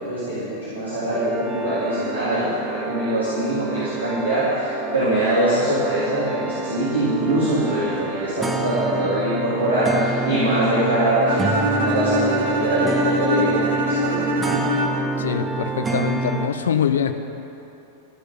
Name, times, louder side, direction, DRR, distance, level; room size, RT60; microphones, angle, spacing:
voice 1, 0.0-14.6, right 1 dB, 80° right, -12 dB, 3.6 m, -23 dB
sound 1, 1.1-16.5, right 4 dB, 10° right, 0.8 m, -28 dB
Bowed string instrument, 11.3-15.2, equal, 60° right, 1.3 m, -24 dB
voice 2, 15.2-17.1, left 8 dB, 65° left, 9 dB, 0.7 m, -23 dB
14.5 x 6.5 x 9.3 m, 2.9 s
figure-of-eight pair, 90°, 0 cm